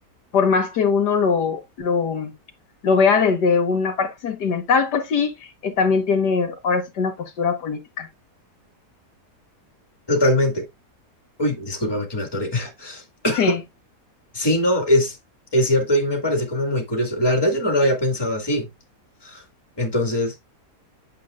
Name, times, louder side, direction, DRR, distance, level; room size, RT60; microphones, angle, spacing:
voice 1, 0.3-2.3 2.8-8.1 13.4-13.6, left 5 dB, 80° left, 1.8 m, -21 dB
voice 2, 10.1-10.6 11.4-13.6 14.3-15.2 15.5-18.7 19.2-19.4 19.8-20.3, left 1 dB, 15° left, 2.1 m, -22 dB
8.5 x 7.5 x 2.4 m
omnidirectional pair, 1.8 m